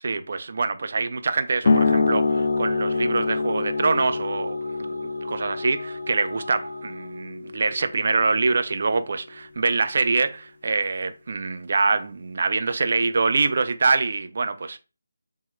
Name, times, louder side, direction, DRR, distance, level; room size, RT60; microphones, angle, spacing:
voice 1, 0.0-4.9 5.3-14.8, right 4 dB, 50° right, 0.3 m, -25 dB
sound 1, 1.5-7.3, right 1 dB, 80° right, 1.4 m, -40 dB
sound 2, 1.6-8.8, left 4 dB, 45° left, 0.4 m, -26 dB
3.5 x 2.1 x 3.1 m
figure-of-eight pair, 170°, 0 cm